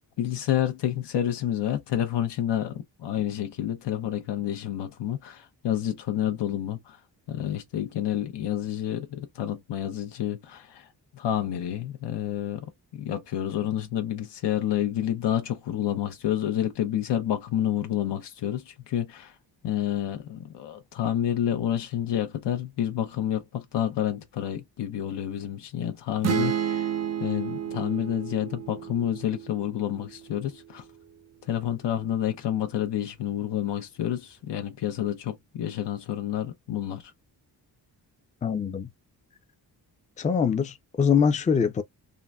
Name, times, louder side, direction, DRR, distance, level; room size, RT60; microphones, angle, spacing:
voice 1, 0.2-7.0 7.3-10.9 11.2-12.6 12.9-19.3 19.6-26.9 27.2-30.8 31.5-37.0, left 11 dB, 85° left, 0.7 m, -29 dB
sound 1, 26.2-30.0, right 9 dB, 40° right, 0.4 m, -30 dB
voice 2, 38.4-38.9 40.2-41.8, left 6 dB, 20° left, 0.4 m, -23 dB
3.7 x 2.1 x 2.2 m
wide cardioid pair, 115°, 41 cm